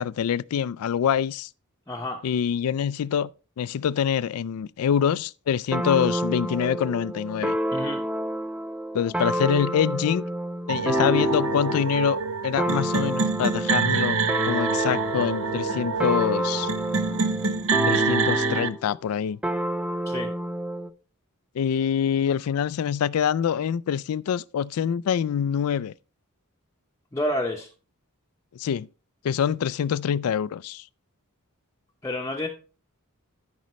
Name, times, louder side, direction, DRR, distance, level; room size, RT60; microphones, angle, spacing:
voice 1, 0.0-1.5 2.2-3.3 3.6-7.6 8.9-10.2 10.7-14.2 14.5-16.7 17.8-19.4 21.6-25.9 28.6-28.9 29.2-30.8, left 8 dB, 70° left, 0.3 m, -25 dB
voice 2, 1.9-2.2 7.7-8.0 20.1-20.3 27.1-27.7 32.0-32.5, left 1 dB, 15° left, 0.7 m, -29 dB
sound 1, 5.7-11.9 12.6-18.8 19.4-20.9, equal, 5° right, 0.4 m, -28 dB
sound 2, 10.7-18.7, right 5 dB, 65° right, 0.7 m, -26 dB
13.5 x 5.2 x 3.1 m
head